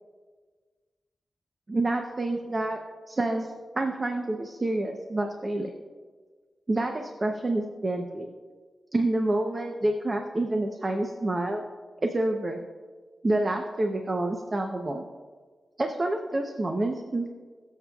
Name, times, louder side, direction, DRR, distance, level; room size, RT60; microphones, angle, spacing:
voice 1, 1.7-2.8 3.1-5.7 6.7-8.3 8.9-11.6 12.0-12.6 13.2-15.0 15.8-17.3, right 2 dB, 30° right, 3 dB, 0.7 m, -28 dB
22.0 x 7.4 x 2.4 m, 1.5 s
wide cardioid pair, 120°, 0 cm